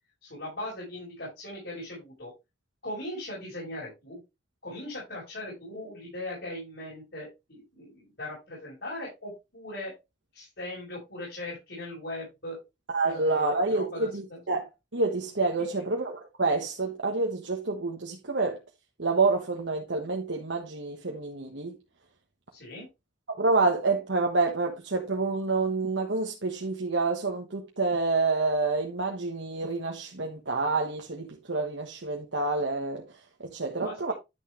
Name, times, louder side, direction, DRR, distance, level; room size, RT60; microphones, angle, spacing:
voice 1, 0.2-2.3 2.8-4.2 4.6-9.9 10.3-12.6 13.0-14.4 15.6-15.9 22.5-22.9 33.8-34.0, left 1 dB, 65° left, 5.5 m, -39 dB
voice 2, 12.9-18.6 19.0-21.8 23.3-33.0 33.4-34.1, right 3 dB, 85° right, 1.4 m, -28 dB
11.0 x 6.1 x 3.2 m
head